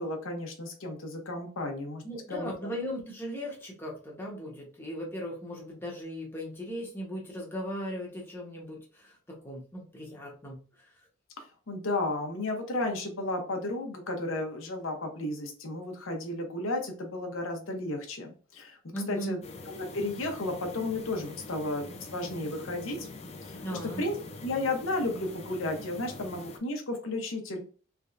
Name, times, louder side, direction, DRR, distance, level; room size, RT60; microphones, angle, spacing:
voice 1, 0.0-2.0 2.3-2.5 11.4-18.8 19.1-19.4 19.7-23.1 23.4-24.2 24.4-27.6, left 2 dB, 70° left, 3 dB, 0.8 m, -33 dB
voice 2, 2.0-10.6 18.9-19.4 23.6-24.0, equal, 10° left, -3 dB, 1.1 m, -38 dB
sound 1, 19.4-26.6, left 2 dB, 30° left, 0.5 m, -44 dB
3.5 x 3.3 x 2.5 m, 0.39 s
head